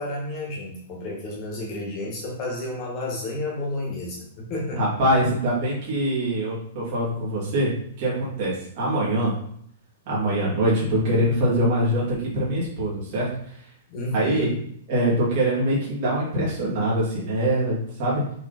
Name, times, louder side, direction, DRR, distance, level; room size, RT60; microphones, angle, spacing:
voice 1, 0.0-4.8 13.9-14.5, left 1 dB, 25° left, -2 dB, 1.9 m, -31 dB
voice 2, 4.8-7.7 8.0-9.3 10.1-13.3 14.1-14.5 14.9-18.2, right 1 dB, 35° right, -6 dB, 2.9 m, -23 dB
6.9 x 3.9 x 4.4 m, 0.65 s
hypercardioid pair, 175°, 0 cm